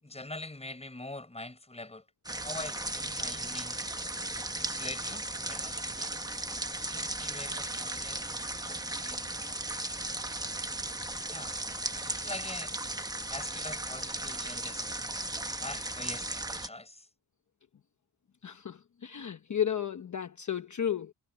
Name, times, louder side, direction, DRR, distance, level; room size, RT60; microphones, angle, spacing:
voice 1, 0.0-2.0 2.4-3.9 4.6-6.1 6.8-9.8 11.3-11.6 12.1-12.8 13.3-14.9 15.6-17.1, left 2 dB, 15° left, 6.5 m, -44 dB
sound 1, 2.3-16.7, right 2 dB, 10° right, 1.0 m, -36 dB
voice 2, 18.4-21.1, left 9 dB, 45° left, 1.0 m, -33 dB
wide cardioid pair, 145°, 42 cm